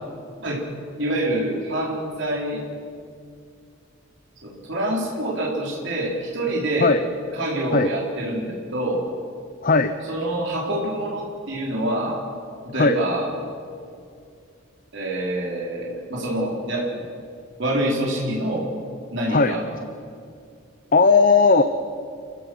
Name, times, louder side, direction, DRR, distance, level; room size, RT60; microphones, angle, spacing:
voice 1, 1.0-2.6 4.4-6.9 7.3-9.0 10.0-12.2 12.6-13.3 14.9-16.9 17.6-18.7 19.1-19.6, right 1 dB, 60° right, -2 dB, 4.0 m, -26 dB
voice 2, 9.6-10.0 12.8-13.0 19.3-19.6 20.9-21.6, left 4 dB, 45° left, 9 dB, 0.8 m, -17 dB
28.5 x 15.5 x 7.9 m, 2.4 s
head